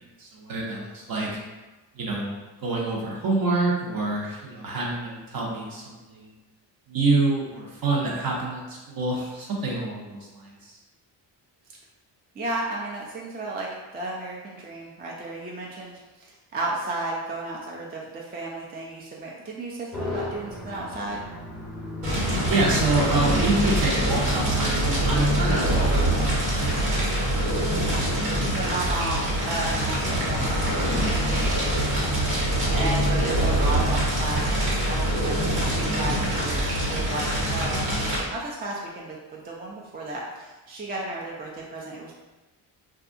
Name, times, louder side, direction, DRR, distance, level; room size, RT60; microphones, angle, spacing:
voice 1, 0.2-1.4 1.9-6.3 6.9-10.8 22.1-27.2, right 3 dB, 50° right, -3 dB, 0.8 m, -27 dB
voice 2, 12.4-21.3 28.1-31.9 32.7-34.5 34.9-42.1, right 2 dB, 25° right, -3 dB, 0.4 m, -34 dB
sound 1, 19.9-27.7, left 1 dB, ahead, 0.7 m, -36 dB
Fire, 22.0-38.2, right 1 dB, 80° right, 1.2 m, -24 dB
2.6 x 2.4 x 2.5 m, 1.1 s
cardioid pair, 95°, 45 cm